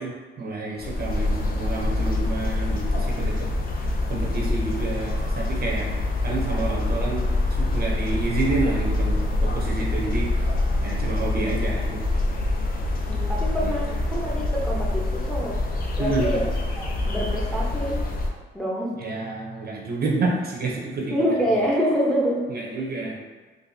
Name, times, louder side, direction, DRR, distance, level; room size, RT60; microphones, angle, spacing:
voice 1, 0.0-3.3 4.1-5.9 6.2-7.3 7.6-10.3 10.8-12.2 13.6-13.7 16.0-16.4 19.0-21.1 22.5-23.2, right 3 dB, 50° right, -2 dB, 0.7 m, -29 dB
sound 1, 0.8-18.3, left 2 dB, 45° left, 0.6 m, -25 dB
voice 2, 13.1-15.6 16.0-16.5 16.8-18.0 18.5-19.0 21.1-22.5, equal, 5° left, -4 dB, 0.8 m, -26 dB
3.9 x 2.5 x 2.7 m, 1.4 s
cardioid pair, 90°, 20 cm